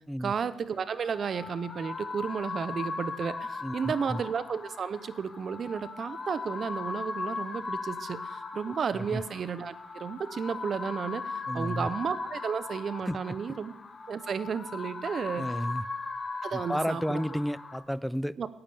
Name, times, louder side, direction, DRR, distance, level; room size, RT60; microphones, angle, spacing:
voice 1, 0.2-13.7 14.1-15.4 16.4-17.2 18.4-18.5, right 6 dB, 50° right, 15 dB, 0.7 m, -33 dB
sound 1, 0.8-17.8, left 4 dB, 35° left, 1.3 m, -38 dB
voice 2, 3.6-4.2 8.9-9.2 11.5-11.9 13.1-13.4 15.4-15.8 16.5-18.3, equal, ahead, 19 dB, 0.3 m, -32 dB
10.5 x 8.8 x 7.0 m, 0.88 s
cardioid pair, 90°, 0 cm